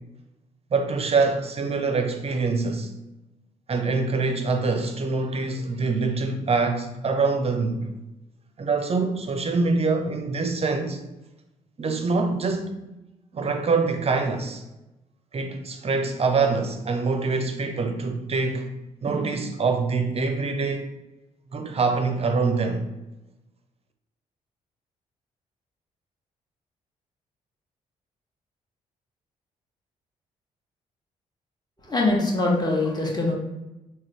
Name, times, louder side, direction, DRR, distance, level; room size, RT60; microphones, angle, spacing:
voice 1, 0.7-2.9 3.7-7.9 8.6-11.0 11.8-12.7 13.3-14.6 15.3-18.7 19.0-20.9 21.5-22.9, right 4 dB, 35° right, 0.6 m, -25 dB
voice 2, 31.9-33.3, left 2 dB, 25° left, 1.3 m, -23 dB
3.9 x 2.7 x 3.2 m
hypercardioid pair, 40°, 18 cm